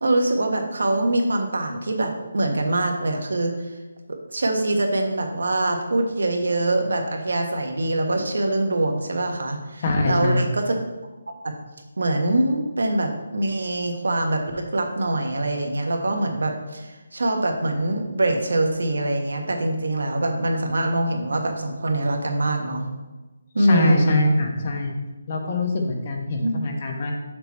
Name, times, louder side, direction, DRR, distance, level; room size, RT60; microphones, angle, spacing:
voice 1, 0.0-3.5 4.3-10.8 11.4-11.5 12.0-22.9 23.5-24.2 26.4-26.5, right 2 dB, 85° right, 3 dB, 1.3 m, -23 dB
voice 2, 9.8-10.5 23.6-24.9 25.3-27.1, left 2 dB, 30° left, 2 dB, 1.0 m, -23 dB
6.9 x 5.9 x 4.3 m, 1.1 s
hypercardioid pair, 175°, 0 cm